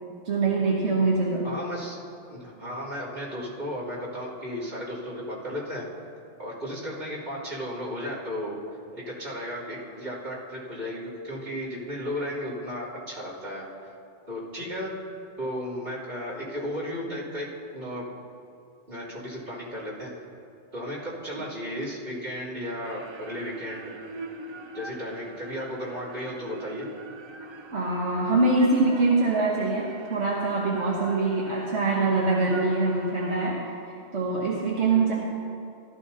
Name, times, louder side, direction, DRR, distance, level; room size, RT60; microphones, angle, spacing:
voice 1, 0.2-1.5 27.7-33.6 34.1-35.1, right 3 dB, 85° right, -4 dB, 1.6 m, -24 dB
voice 2, 1.4-2.0 2.3-5.9 6.4-8.6 8.9-13.7 14.3-14.9 15.4-17.5 17.7-18.0 18.9-20.1 20.7-23.9 24.7-26.9, equal, 60° right, -10 dB, 3.4 m, -34 dB
sound 1, 22.8-33.5, right 3 dB, 45° right, 0.4 m, -39 dB
17.5 x 13.0 x 2.8 m, 2.5 s
omnidirectional pair, 1.1 m